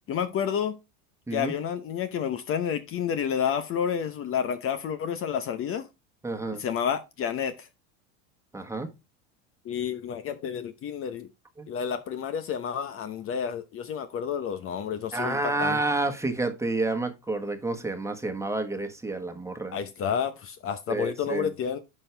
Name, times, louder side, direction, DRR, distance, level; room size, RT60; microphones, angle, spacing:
voice 1, 0.1-0.8 1.3-5.9 6.6-7.7 9.6-11.3 11.7-15.8 19.7-21.8, left 8 dB, 40° left, 0.9 m, -30 dB
voice 2, 6.2-6.6 8.5-8.9 11.6-11.7 15.1-19.8 20.9-21.5, right 2 dB, 10° right, 1.4 m, -29 dB
10.5 x 5.5 x 3.4 m
supercardioid pair, 110°, 36 cm